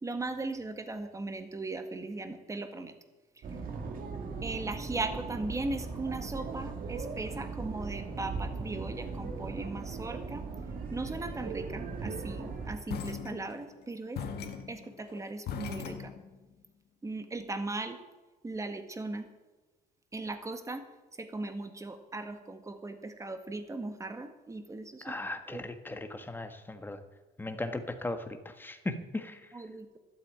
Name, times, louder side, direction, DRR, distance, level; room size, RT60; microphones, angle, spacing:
voice 1, 0.0-2.9 3.3-3.4 4.4-10.5 10.9-14.2 14.7-16.1 17.0-18.0 18.4-19.3 20.1-20.8 21.2-25.2 25.5-25.6 25.9-26.0 29.5-30.0, right 2 dB, 20° right, 8 dB, 1.7 m, -38 dB
sound 1, 3.4-12.8, right 4 dB, 55° right, 2.0 m, -38 dB
sound 2, 12.9-13.8 14.1-16.5, left 6 dB, 70° left, 1.8 m, -39 dB
voice 2, 25.0-27.0 27.4-29.5, left 2 dB, 10° left, 8 dB, 1.5 m, -37 dB
12.5 x 8.8 x 8.8 m, 1.2 s
cardioid pair, 110°, 17 cm